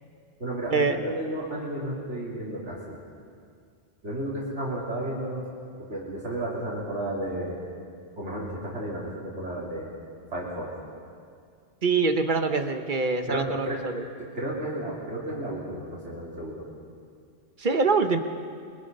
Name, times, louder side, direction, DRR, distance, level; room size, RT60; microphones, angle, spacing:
voice 1, 0.4-3.0 4.0-5.4 5.8-7.6 8.2-9.9 10.3-10.7 13.3-13.8 14.2-16.6, right 1 dB, 80° right, -5 dB, 3.6 m, -32 dB
voice 2, 11.8-14.0 17.6-18.2, right 4 dB, 45° right, 7 dB, 1.3 m, -24 dB
27.5 x 23.0 x 5.4 m, 2.2 s
omnidirectional pair, 1.2 m